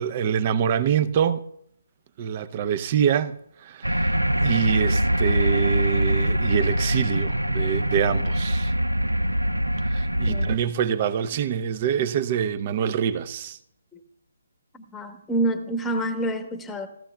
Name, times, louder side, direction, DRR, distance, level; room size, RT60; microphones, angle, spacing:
voice 1, 0.0-1.4 2.2-8.7 9.9-13.6, right 8 dB, 35° right, 0.6 m, -25 dB
sound 1, 3.8-10.6, equal, 90° right, 0.5 m, -23 dB
voice 2, 14.9-16.9, right 1 dB, 5° left, 1.0 m, -27 dB
17.0 x 13.5 x 2.3 m
figure-of-eight pair, 140°, 0 cm